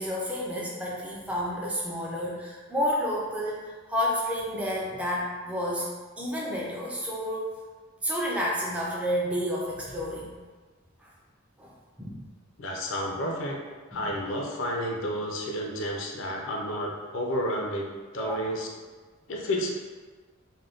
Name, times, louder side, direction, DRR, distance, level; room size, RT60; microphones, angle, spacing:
voice 1, 0.0-5.9 6.2-7.6 8.0-10.4 11.0-11.1 11.6-11.7 12.0-12.3 13.9-14.1 18.2-18.4, equal, 5° right, -4 dB, 0.4 m, -30 dB
voice 2, 12.6-13.6 13.9-17.9 18.1-18.7 19.3-19.7, equal, 65° left, 0 dB, 0.5 m, -31 dB
2.5 x 2.1 x 3.4 m, 1.4 s
head